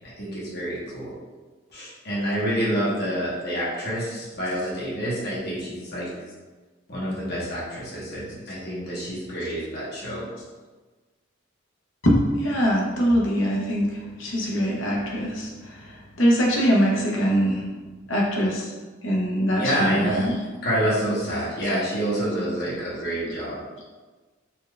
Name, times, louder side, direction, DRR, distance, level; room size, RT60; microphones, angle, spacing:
voice 1, 0.2-1.1 1.7-6.0 6.9-10.2 19.5-20.3 20.6-23.5, equal, 50° left, -7 dB, 1.3 m, -27 dB
voice 2, 12.0-13.9 14.2-15.5 16.2-17.6 18.1-18.7 19.0-20.4, equal, 70° left, -3 dB, 0.9 m, -22 dB
4.4 x 2.5 x 3.2 m, 1.3 s
head